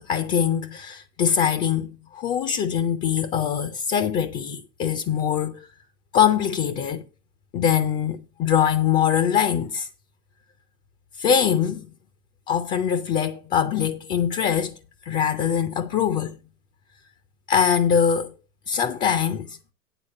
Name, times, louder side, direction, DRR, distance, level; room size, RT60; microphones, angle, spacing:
voice 1, 0.0-5.7 6.1-7.0 7.5-9.9 11.2-11.9 12.5-14.7 15.1-16.4 17.5-18.3 18.7-19.6, left 8 dB, 20° left, 0.4 m, -23 dB
10.0 x 3.9 x 7.4 m
hypercardioid pair, 115°, 47 cm